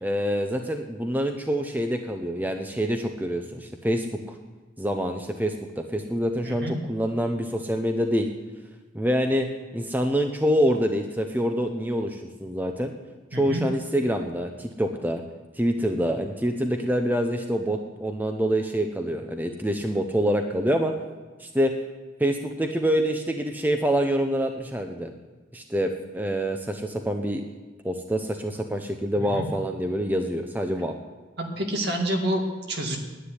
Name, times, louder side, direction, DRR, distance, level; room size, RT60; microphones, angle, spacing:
voice 1, 0.0-4.4 4.8-8.3 8.9-12.9 13.3-15.2 15.6-20.9 21.4-21.7 22.2-25.1 25.5-27.4 27.8-31.0, equal, 10° right, 5 dB, 0.7 m, -26 dB
voice 2, 6.4-6.7 13.3-13.6 29.2-29.5 31.4-33.0, right 1 dB, 55° right, 2 dB, 2.2 m, -28 dB
10.0 x 9.5 x 9.8 m, 1.3 s
head